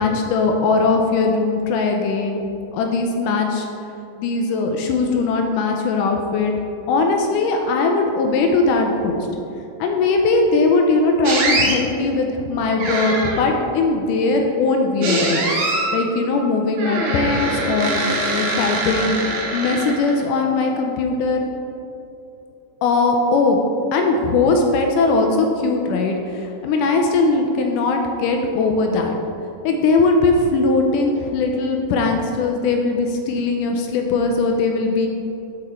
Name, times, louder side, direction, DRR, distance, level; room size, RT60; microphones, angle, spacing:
voice 1, 0.0-2.4 2.7-3.7 4.2-6.5 6.9-9.3 9.8-15.4 15.9-18.0 18.3-19.2 19.5-21.5 22.8-23.7 23.9-29.2 29.6-35.1, left 3 dB, 80° left, 3 dB, 1.9 m, -19 dB
sound 1, 11.2-11.8 12.8-13.5 15.0-16.0 16.8-20.2, right 2 dB, 70° right, 2.1 m, -23 dB
6.6 x 5.0 x 4.2 m, 2.8 s
omnidirectional pair, 4.0 m